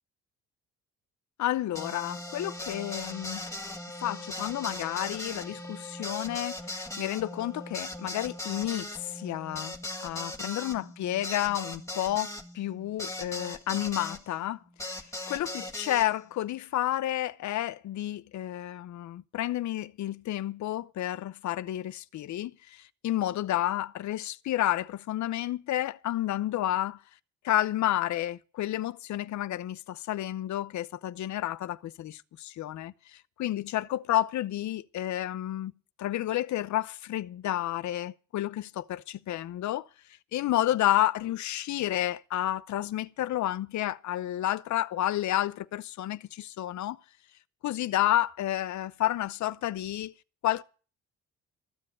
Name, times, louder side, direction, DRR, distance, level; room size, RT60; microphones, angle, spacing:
voice 1, 1.4-3.5 4.0-9.7 10.0-14.6 15.3-27.0 27.4-35.7 36.0-39.9 40.3-47.0 47.6-50.1 50.4-50.6, left 13 dB, 70° left, 0.7 m, -30 dB
sound 1, 1.7-14.2 14.8-16.1, left 1 dB, 10° left, 1.8 m, -39 dB
13.5 x 7.8 x 9.7 m
cardioid pair, 90°, 30 cm